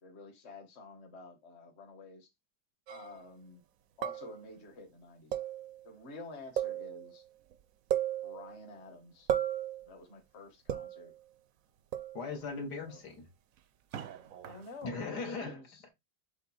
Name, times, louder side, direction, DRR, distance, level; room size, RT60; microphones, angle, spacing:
voice 1, 0.0-2.3 2.9-3.6 4.0-5.4 5.8-7.2 8.2-9.3 9.9-11.1 12.8-13.0 14.4-15.8, left 3 dB, 35° left, 1.6 m, -50 dB
sound 1, 2.9-3.2 4.0-4.5 5.3-5.9 6.6-7.2 7.5-7.6 7.9-8.7 9.3-9.9 10.7-11.2 11.9-12.4 13.9-14.9, right 10 dB, 60° right, 0.9 m, -35 dB
voice 2, 12.1-13.3 14.8-15.9, left 4 dB, 60° left, 2.1 m, -39 dB
7.4 x 3.5 x 4.2 m
omnidirectional pair, 2.0 m